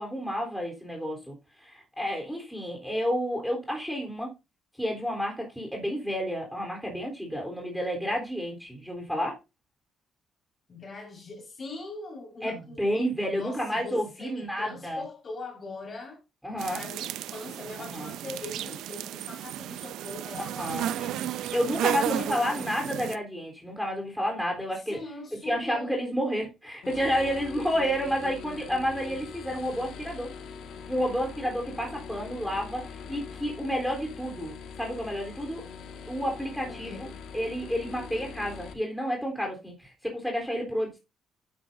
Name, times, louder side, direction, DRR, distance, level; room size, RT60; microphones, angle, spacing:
voice 1, 0.0-1.4 1.6-4.3 4.8-9.4 12.4-15.0 16.4-16.8 17.8-18.1 20.5-20.9 21.5-25.0 25.4-30.3 30.9-32.8 33.1-35.6 36.1-37.1 37.3-41.0, equal, ahead, 3.8 m, -30 dB
voice 2, 10.7-12.8 13.3-16.2 16.7-21.5 21.9-22.9 24.7-26.0 36.7-37.1, left 3 dB, 40° left, 5.1 m, -42 dB
sound 1, 16.6-23.2, right 12 dB, 85° right, 0.5 m, -33 dB
sound 2, 26.8-38.7, left 6 dB, 80° left, 2.0 m, -42 dB
10.0 x 9.7 x 2.7 m
cardioid pair, 90°, 0 cm